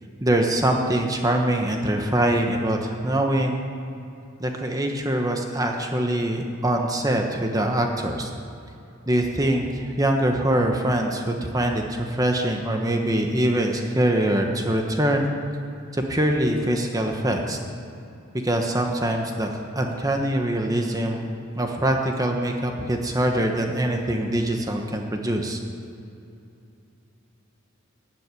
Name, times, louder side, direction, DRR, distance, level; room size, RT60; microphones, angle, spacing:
voice 1, 0.2-3.6 4.4-8.3 9.1-15.3 15.9-17.6 18.4-19.5 19.7-21.3 21.5-25.6, right 1 dB, 20° right, 2 dB, 1.2 m, -23 dB
16.0 x 7.7 x 9.8 m, 2.7 s
head